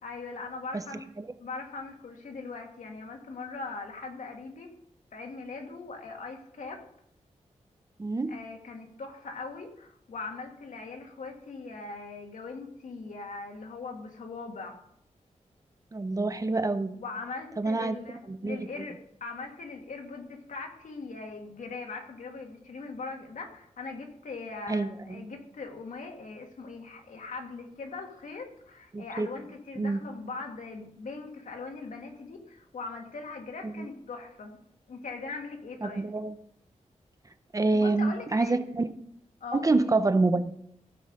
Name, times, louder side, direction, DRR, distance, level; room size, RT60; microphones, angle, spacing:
voice 1, 0.0-1.1 1.4-4.7 5.1-6.8 8.3-14.8 16.9-34.6 34.9-36.1 37.7-38.6 39.4-40.0, left 3 dB, 80° left, 2 dB, 2.1 m, -40 dB
voice 2, 8.0-8.3 15.9-17.0 17.6-18.0 18.3-18.7 24.7-25.2 28.9-29.3 29.8-30.0 33.6-33.9 35.8-36.3 37.5-38.9 39.5-40.5, right 3 dB, 25° right, 11 dB, 0.7 m, -27 dB
16.0 x 5.5 x 6.5 m, 0.71 s
wide cardioid pair, 135°, 13 cm